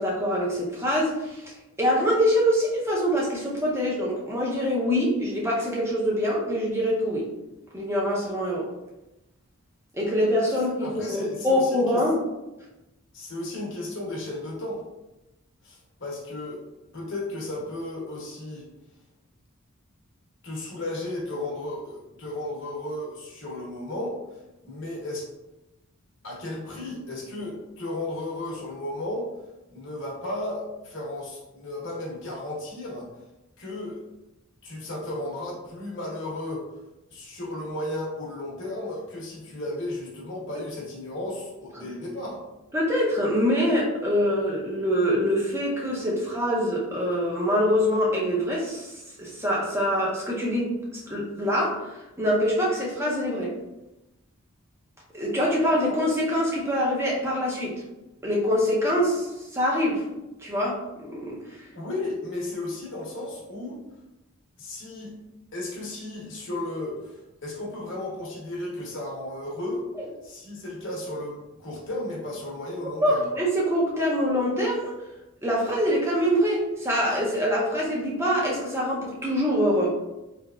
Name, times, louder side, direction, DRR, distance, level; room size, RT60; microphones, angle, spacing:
voice 1, 0.0-1.5 1.8-7.3 7.7-8.7 9.9-12.2 41.8-41.9 42.7-53.5 55.1-57.8 58.2-60.0 60.4-61.4 70.0-70.1 73.0-74.9 75.4-80.0, equal, 10° right, -4 dB, 0.6 m, -24 dB
voice 2, 10.8-12.0 13.1-14.8 15.6-16.6 16.9-18.6 20.4-24.2 24.6-25.3 26.2-29.3 29.7-33.1 33.6-34.0 34.6-36.7 37.1-42.4 61.7-63.8 64.6-65.1 65.5-69.8 70.2-73.3, left 1 dB, 55° left, -3 dB, 0.9 m, -34 dB
3.4 x 2.8 x 2.3 m, 0.98 s
head